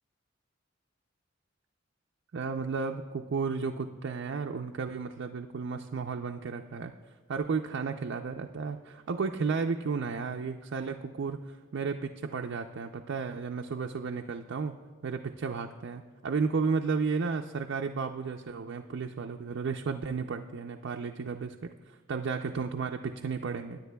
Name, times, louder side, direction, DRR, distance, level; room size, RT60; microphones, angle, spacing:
voice 1, 2.3-6.9 7.3-14.8 15.0-21.7 22.1-23.8, right 5 dB, 65° right, 3 dB, 0.4 m, -33 dB
20.5 x 10.0 x 2.2 m, 1.5 s
head